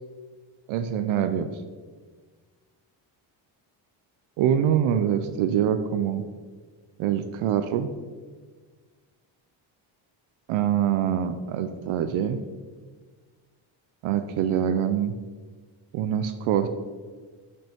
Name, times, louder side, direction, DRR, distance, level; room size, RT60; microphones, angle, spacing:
voice 1, 0.7-1.5 4.4-6.2 7.0-7.9 10.5-12.4 14.0-15.1 15.9-16.7, right 9 dB, 80° right, 9 dB, 0.6 m, -24 dB
8.1 x 5.8 x 3.5 m, 1.5 s
cardioid pair, 120°, 48 cm